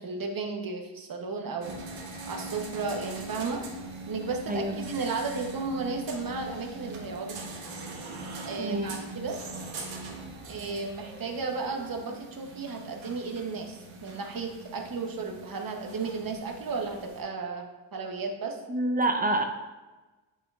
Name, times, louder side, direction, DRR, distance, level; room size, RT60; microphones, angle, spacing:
voice 1, 0.0-1.7 2.3-3.6 4.1-7.4 8.4-9.4 10.5-18.6, right 4 dB, 50° right, 3 dB, 0.9 m, -34 dB
sound 1, 1.6-17.2, right 2 dB, 85° right, 1.1 m, -41 dB
voice 2, 8.6-9.0 18.7-19.4, right 1 dB, 20° right, 5 dB, 0.5 m, -27 dB
7.5 x 5.7 x 2.4 m, 1.2 s
wide cardioid pair, 120°, 45 cm